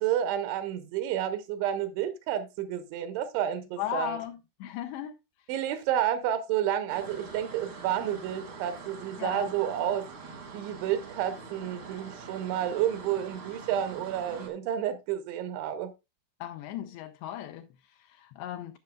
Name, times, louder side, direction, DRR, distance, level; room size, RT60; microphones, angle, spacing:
voice 1, 0.0-4.2 5.5-10.1 10.5-15.9, right 10 dB, 80° right, 3.1 m, -30 dB
voice 2, 3.8-5.2 9.2-9.5 16.4-18.8, left 11 dB, 85° left, 2.4 m, -37 dB
sound 1, 6.9-14.5, right 4 dB, 60° right, 1.2 m, -44 dB
15.5 x 5.7 x 2.3 m
omnidirectional pair, 5.4 m